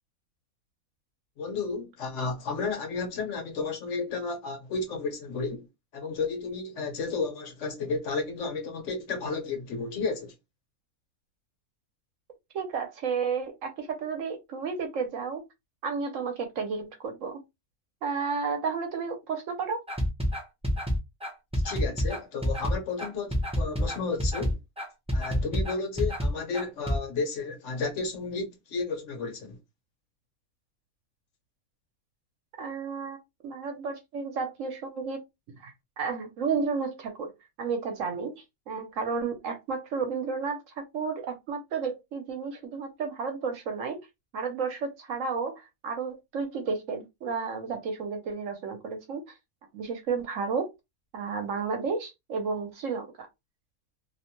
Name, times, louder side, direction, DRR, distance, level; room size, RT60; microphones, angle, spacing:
voice 1, 1.4-5.7 5.9-10.3 21.6-24.6 25.1-29.6, left 4 dB, 60° left, 1.1 m, -32 dB
voice 2, 12.5-15.4 15.8-17.4 18.0-19.8 32.6-35.2 35.6-37.3 37.6-44.0 44.3-49.2 49.7-50.7 51.1-53.3, right 5 dB, 70° right, 1.0 m, -32 dB
sound 1, 19.9-27.0, equal, 5° right, 0.4 m, -28 dB
2.7 x 2.1 x 2.9 m
omnidirectional pair, 1.5 m